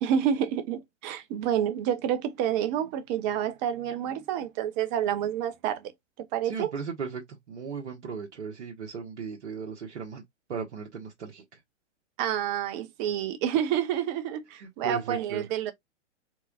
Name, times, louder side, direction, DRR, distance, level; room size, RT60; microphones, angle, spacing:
voice 1, 0.0-5.9 6.2-6.7 12.2-15.7, right 9 dB, 35° right, 0.9 m, -28 dB
voice 2, 6.4-10.2 10.5-11.6 14.6-15.5, right 5 dB, 70° right, 1.5 m, -36 dB
4.7 x 3.9 x 2.4 m
hypercardioid pair, 120°, 37 cm